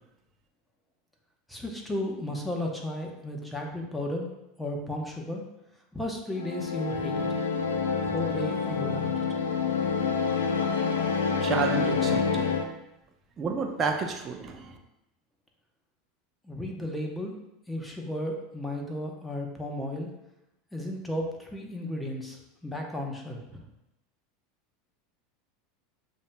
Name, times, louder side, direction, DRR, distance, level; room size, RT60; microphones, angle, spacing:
voice 1, 1.5-4.3 4.6-5.4 5.9-7.3 8.0-9.1 16.4-17.3 17.7-20.1 20.7-23.6, left 1 dB, 5° left, 0 dB, 0.9 m, -34 dB
sound 1, 6.3-12.7, left 5 dB, 90° left, 0.4 m, -27 dB
voice 2, 11.4-12.5 13.4-14.7, right 5 dB, 30° right, 2 dB, 0.7 m, -31 dB
7.0 x 2.7 x 2.2 m, 0.90 s
hypercardioid pair, 90°, 0 cm